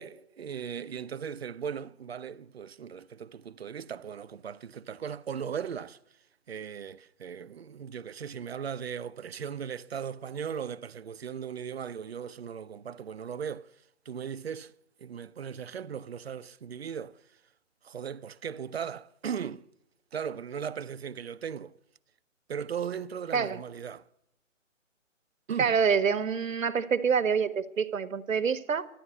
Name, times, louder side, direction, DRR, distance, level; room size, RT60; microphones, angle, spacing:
voice 1, 0.0-6.0 6.5-13.7 14.1-14.7 15.0-17.2 17.8-19.7 20.1-21.7 22.5-24.1 25.5-25.7, right 7 dB, 55° right, 0.5 m, -37 dB
voice 2, 25.6-28.9, right 6 dB, 80° right, 1.0 m, -26 dB
12.5 x 10.0 x 8.2 m
hypercardioid pair, 160°, 39 cm